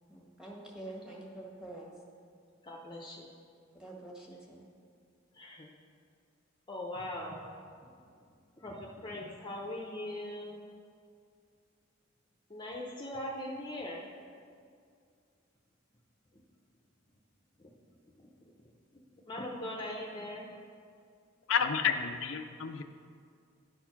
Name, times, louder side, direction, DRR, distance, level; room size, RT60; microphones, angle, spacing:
voice 1, 0.1-2.0 3.7-4.6, right 1 dB, 5° right, -2 dB, 1.4 m, -46 dB
voice 2, 2.6-3.3 5.3-5.7 6.7-7.4 8.6-10.6 12.5-14.1 17.6-17.7 18.2-18.3 19.3-20.5, left 1 dB, 25° left, -1 dB, 0.7 m, -40 dB
voice 3, 21.5-22.8, left 7 dB, 80° left, 6 dB, 0.5 m, -30 dB
10.5 x 4.5 x 5.8 m, 2.3 s
head